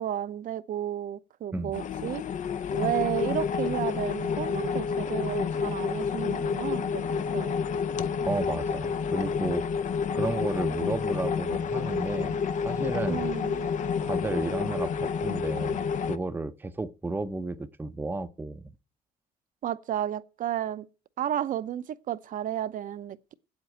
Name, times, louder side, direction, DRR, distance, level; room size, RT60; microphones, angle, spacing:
voice 1, 0.0-2.2 2.7-7.5 13.1-13.7 19.6-20.9 21.2-23.3, right 11 dB, 50° right, 0.7 m, -32 dB
sound 1, 1.7-16.2, left 6 dB, 45° left, 0.6 m, -29 dB
voice 2, 8.3-9.6 10.1-13.3 14.0-18.6, right 3 dB, 10° right, 0.7 m, -33 dB
8.2 x 8.1 x 9.0 m
cardioid pair, 110°, 17 cm